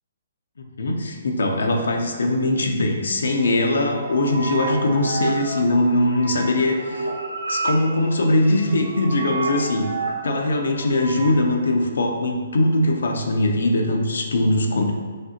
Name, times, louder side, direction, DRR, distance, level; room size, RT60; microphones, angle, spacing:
voice 1, 0.8-7.1 7.5-9.8 10.2-14.9, left 1 dB, 80° left, 3 dB, 0.6 m, -21 dB
sound 1, 3.4-11.4, right 3 dB, 80° right, 0.8 m, -31 dB
6.4 x 2.4 x 2.8 m, 1.5 s
hypercardioid pair, 145°, 0 cm